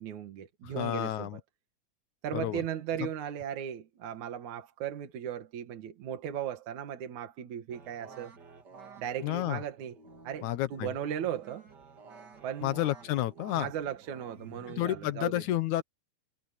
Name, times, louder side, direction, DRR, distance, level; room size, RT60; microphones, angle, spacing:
voice 1, 0.0-1.4 2.2-8.3 9.0-10.0 10.2-11.7 12.4-12.8 13.5-15.4, right 9 dB, 65° right, 3.0 m, -37 dB
voice 2, 0.6-1.4 2.3-2.6 3.0-3.1 9.2-9.6 10.4-10.9 12.6-13.7 14.7-15.8, left 14 dB, 70° left, 2.3 m, -31 dB
sound 1, 7.7-15.2, right 5 dB, 35° right, 2.3 m, -51 dB
omnidirectional pair, 3.7 m